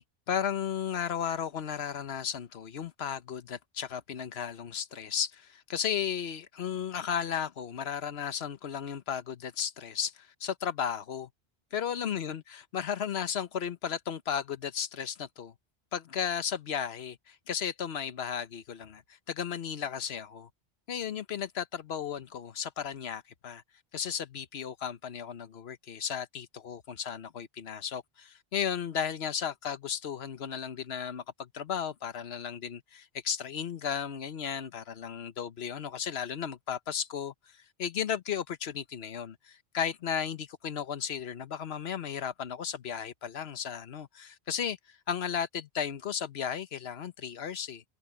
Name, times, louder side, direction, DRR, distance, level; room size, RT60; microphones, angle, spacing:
voice 1, 0.0-11.3 11.7-15.5 15.9-20.5 20.9-23.6 23.9-47.8, left 8 dB, 80° left, 1.2 m, -35 dB
omnidirectional pair, 1.0 m